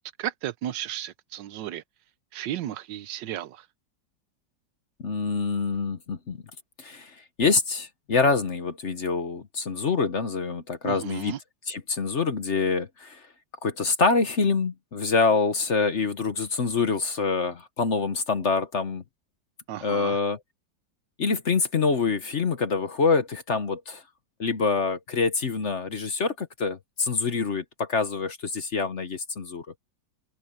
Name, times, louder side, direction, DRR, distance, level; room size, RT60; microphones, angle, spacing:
voice 1, 0.2-1.8 2.3-3.7 10.8-11.4 19.7-20.2, right 12 dB, 75° right, 1.4 m, -34 dB
voice 2, 5.0-6.4 6.8-11.3 11.7-13.2 13.6-19.0 19.8-20.4 21.2-24.0 24.4-29.7, left 4 dB, 45° left, 1.2 m, -26 dB
open air
omnidirectional pair, 2.0 m